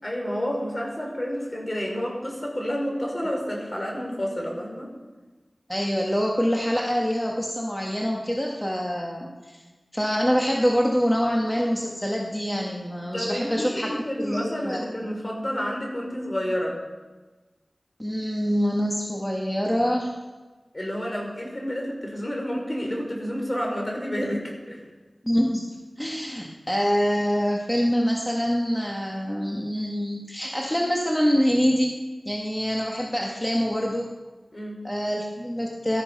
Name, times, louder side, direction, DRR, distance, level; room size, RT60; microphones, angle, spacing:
voice 1, 0.0-4.9 13.1-16.8 20.7-24.8 34.5-34.8, equal, 35° left, 0 dB, 5.4 m, -30 dB
voice 2, 5.7-9.6 9.9-13.9 14.2-15.1 18.0-20.1 25.2-31.9 32.3-34.1 34.8-36.0, equal, 10° left, -1 dB, 1.9 m, -25 dB
18.0 x 13.5 x 5.5 m, 1.3 s
wide cardioid pair, 40°, 0 cm